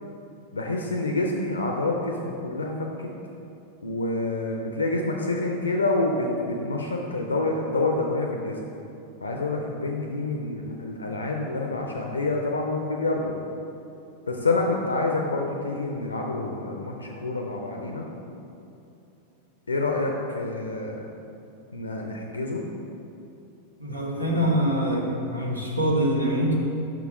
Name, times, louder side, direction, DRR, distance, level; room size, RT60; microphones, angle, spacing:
voice 1, 0.5-3.1 3.8-8.6 9.2-13.4 14.3-18.1 19.7-21.1 21.7-22.6 24.3-24.5, left 2 dB, 75° left, 1 dB, 0.4 m, -27 dB
voice 2, 23.8-26.6, equal, 90° right, -3 dB, 0.9 m, -24 dB
5.7 x 3.7 x 4.8 m, 2.7 s
figure-of-eight pair, 90°, 0 cm